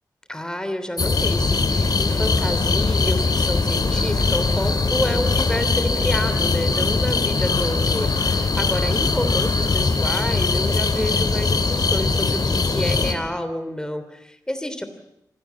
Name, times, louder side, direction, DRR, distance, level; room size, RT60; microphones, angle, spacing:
voice 1, 0.3-14.8, left 1 dB, 10° left, 10 dB, 3.2 m, -29 dB
sound 1, 1.0-13.1, left 3 dB, 65° left, 2.6 m, -21 dB
25.5 x 17.0 x 8.4 m, 0.79 s
wide cardioid pair, 80°, 7 cm